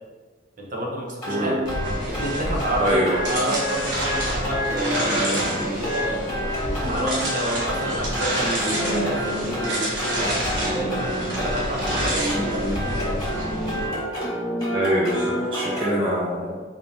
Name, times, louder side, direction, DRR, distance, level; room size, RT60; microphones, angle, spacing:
voice 1, 0.6-1.6 2.1-6.2 6.8-10.4 10.7-13.2, right 1 dB, 50° right, -1 dB, 0.8 m, -29 dB
sound 1, 1.2-16.0, equal, 20° left, 1.4 m, -29 dB
sound 2, 1.6-13.9, right 1 dB, 80° right, 1.0 m, -28 dB
voice 2, 2.8-3.2 14.7-16.6, equal, 30° right, -5 dB, 0.5 m, -24 dB
4.2 x 3.5 x 2.7 m, 1.4 s
head